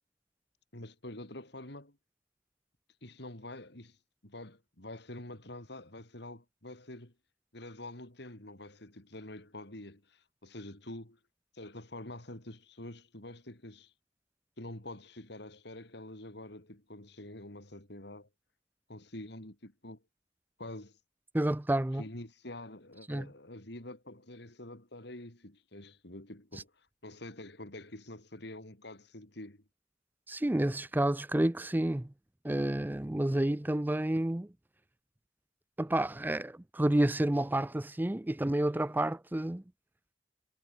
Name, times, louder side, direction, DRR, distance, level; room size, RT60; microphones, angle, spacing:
voice 1, 0.7-2.0 3.0-4.0 4.2-7.1 7.5-11.2 11.5-13.9 14.6-18.3 18.9-20.0 20.6-20.9 22.0-26.7 27.0-29.6, left 1 dB, 65° left, 4.2 m, -46 dB
voice 2, 21.3-22.0 23.1-23.3 30.3-32.1 32.4-34.5 35.8-39.6, right 1 dB, 10° right, 0.5 m, -30 dB
head